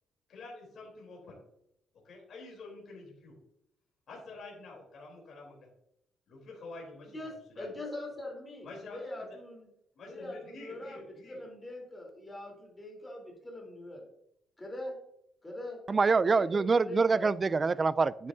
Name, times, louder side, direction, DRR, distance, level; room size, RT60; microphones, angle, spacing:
voice 1, 0.3-1.4 2.0-3.4 4.1-5.6 6.3-7.7 8.6-9.0 10.0-11.4 18.2-18.3, left 3 dB, 60° left, 3.7 m, -48 dB
voice 2, 7.1-9.7 10.1-14.0 14.6-15.0 15.4-15.8 16.2-17.3, left 1 dB, 20° left, 3.7 m, -42 dB
voice 3, 15.9-18.3, right 4 dB, 35° right, 0.3 m, -26 dB
9.8 x 8.3 x 2.8 m
cardioid pair, 90°, 0 cm